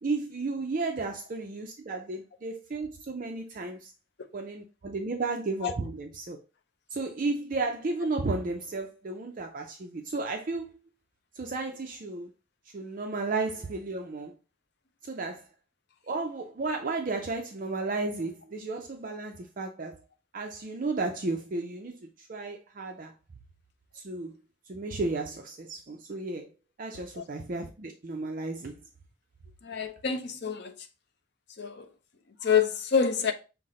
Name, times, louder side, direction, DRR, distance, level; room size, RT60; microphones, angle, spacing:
voice 1, 0.0-3.9 4.3-6.4 6.9-10.8 11.3-12.3 12.7-14.3 15.0-15.5 16.1-20.0 20.3-23.1 23.9-24.3 24.7-26.5 26.8-28.8, right 3 dB, 40° right, 0.4 m, -33 dB
voice 2, 29.6-30.9 31.6-31.9 32.4-33.3, left 6 dB, 55° left, 0.5 m, -27 dB
5.8 x 2.0 x 3.7 m
head